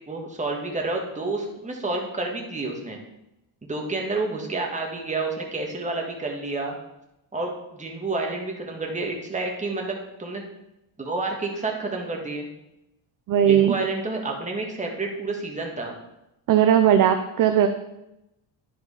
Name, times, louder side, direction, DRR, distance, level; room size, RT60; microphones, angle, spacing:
voice 1, 0.1-3.0 3.6-6.7 7.3-10.4 11.0-12.5 13.4-15.9, right 3 dB, 15° right, 0 dB, 1.7 m, -29 dB
voice 2, 13.3-13.7 16.5-17.7, right 10 dB, 40° right, 7 dB, 0.6 m, -18 dB
10.5 x 5.0 x 4.9 m, 0.88 s
cardioid pair, 130°, 50 cm